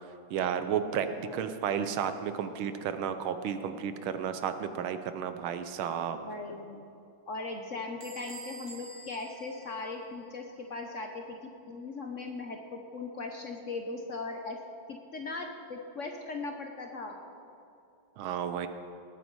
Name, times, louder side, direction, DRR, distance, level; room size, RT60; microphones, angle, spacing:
voice 1, 0.3-1.1 1.3-6.2 18.2-18.7, right 8 dB, 85° right, 10 dB, 1.7 m, -32 dB
voice 2, 6.1-6.8 7.3-14.6 14.9-17.2, left 3 dB, 50° left, 3 dB, 0.9 m, -39 dB
Bell / Squeak, 8.0-10.5, right 3 dB, 25° right, 1.0 m, -49 dB
20.0 x 9.4 x 4.7 m, 2.6 s
omnidirectional pair, 2.2 m